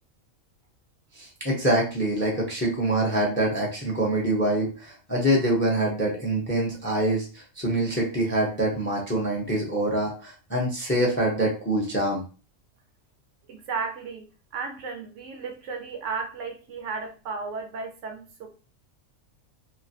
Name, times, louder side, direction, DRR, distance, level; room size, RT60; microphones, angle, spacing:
voice 1, 1.2-12.2, right 1 dB, 10° left, -1 dB, 0.5 m, -25 dB
voice 2, 13.5-14.3 14.5-18.5, right 4 dB, 70° right, 4 dB, 0.9 m, -34 dB
3.1 x 2.5 x 2.7 m, 0.37 s
omnidirectional pair, 1.4 m